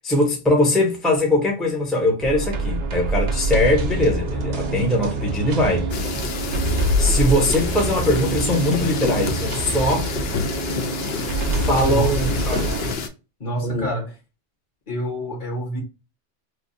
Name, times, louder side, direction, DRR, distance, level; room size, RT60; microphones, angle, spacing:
voice 1, 0.0-5.9 7.0-10.1 11.5-12.7 13.6-13.9, left 1 dB, ahead, 0.7 m, -21 dB
sound 1, 2.2-13.0, right 1 dB, 65° right, 0.8 m, -25 dB
sound 2, 5.9-13.1, left 6 dB, 65° left, 0.8 m, -30 dB
voice 2, 11.8-12.2 12.4-12.7 13.4-14.2 14.9-15.8, right 1 dB, 45° left, 1.2 m, -27 dB
3.3 x 2.3 x 2.5 m
omnidirectional pair, 1.2 m